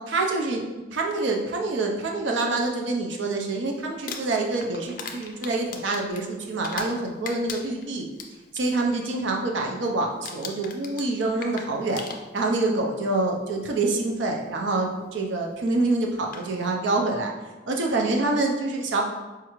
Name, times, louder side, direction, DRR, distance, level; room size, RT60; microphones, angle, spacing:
voice 1, 0.1-0.6 0.9-8.1 8.5-12.0 12.3-17.3 17.7-19.0, right 2 dB, 80° right, 1 dB, 0.5 m, -26 dB
Crumpling crinkling, 3.9-7.0 7.2-8.7 9.0-9.3 9.6-9.9 10.2-12.6 13.6-13.7 15.7-15.8 16.2-16.5, left 5 dB, 45° left, 0.3 m, -38 dB
4.4 x 2.4 x 3.0 m, 1.1 s
head